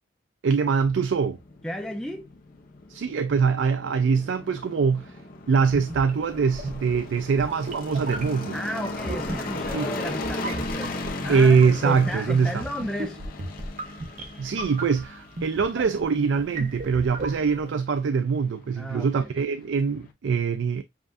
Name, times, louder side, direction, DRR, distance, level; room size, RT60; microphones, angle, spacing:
voice 1, 0.4-1.4 2.9-5.2 5.5-8.6 9.7-9.9 11.3-12.6 14.4-20.8, right 5 dB, 75° right, 0.4 m, -23 dB
sound 1, 0.8-20.1, left 2 dB, 50° left, 1.0 m, -38 dB
voice 2, 1.6-2.3 8.5-13.2 18.7-19.3, equal, 5° left, 0.4 m, -34 dB
sound 2, 5.6-17.8, right 2 dB, 40° right, 0.7 m, -37 dB
7.3 x 2.5 x 2.5 m
head